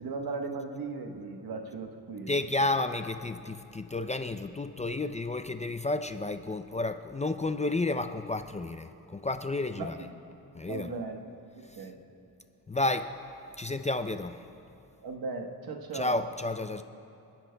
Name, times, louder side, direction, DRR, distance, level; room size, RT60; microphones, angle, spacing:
voice 1, 0.0-2.4 9.8-10.1 10.7-11.2 11.6-12.0 15.0-16.2, right 3 dB, 70° right, 4 dB, 1.2 m, -37 dB
voice 2, 2.3-10.1 10.5-10.9 11.6-11.9 12.7-13.1 13.6-14.4 15.9-16.8, left 2 dB, 20° left, 8 dB, 0.4 m, -31 dB
28.0 x 10.5 x 2.3 m, 2.8 s
cardioid pair, 75°, 38 cm